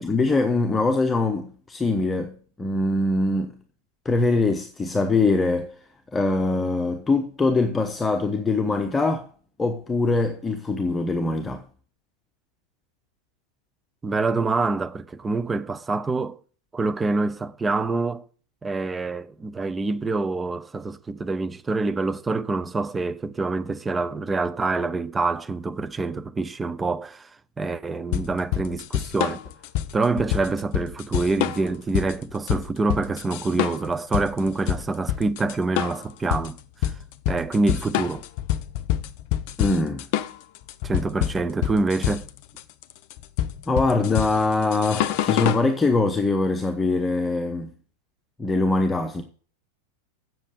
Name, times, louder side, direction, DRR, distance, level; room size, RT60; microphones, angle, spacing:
voice 1, 0.0-3.6 4.0-5.7 6.1-9.3 9.6-11.6 39.6-40.0 43.7-47.7 48.4-49.2, left 3 dB, 15° left, 1.1 m, -23 dB
voice 2, 14.0-16.4 16.7-18.2 18.6-27.3 27.6-29.4 29.9-36.6 36.8-36.9 37.3-38.3 40.8-42.3, right 3 dB, 15° right, 0.7 m, -26 dB
sound 1, 28.1-45.7, left 12 dB, 45° left, 0.7 m, -27 dB
7.8 x 7.6 x 6.6 m
figure-of-eight pair, 90°, 0 cm